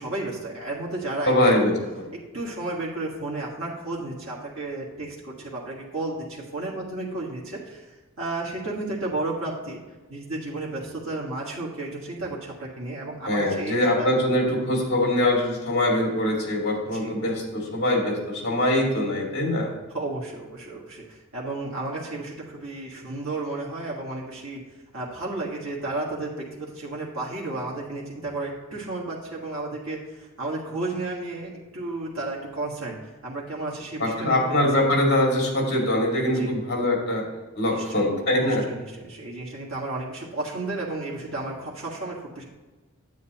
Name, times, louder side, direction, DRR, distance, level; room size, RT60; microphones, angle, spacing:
voice 1, 0.0-1.7 2.1-9.8 10.1-14.1 16.9-17.2 19.9-24.6 24.9-33.0 33.2-34.7 36.3-36.6 37.7-38.0 38.4-42.4, right 2 dB, 75° right, -4 dB, 1.8 m, -33 dB
voice 2, 1.2-1.7 13.3-19.7 34.0-37.3 37.6-38.7, left 1 dB, 55° left, 0 dB, 2.4 m, -23 dB
9.4 x 8.6 x 3.0 m, 1.2 s
head